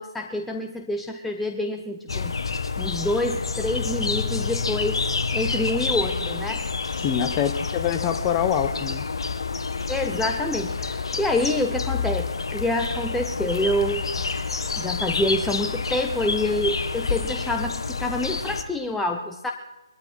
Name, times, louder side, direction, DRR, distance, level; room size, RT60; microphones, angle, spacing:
voice 1, 0.0-2.3 2.8-5.0 5.3-6.6 9.9-14.1 14.8-19.5, left 1 dB, 5° left, 2 dB, 0.7 m, -27 dB
sound 1, 2.1-18.6, left 4 dB, 70° left, 1.4 m, -28 dB
voice 2, 7.0-9.0, left 9 dB, 25° left, 8 dB, 1.1 m, -25 dB
21.5 x 13.5 x 4.6 m, 1.0 s
figure-of-eight pair, 145°, 3 cm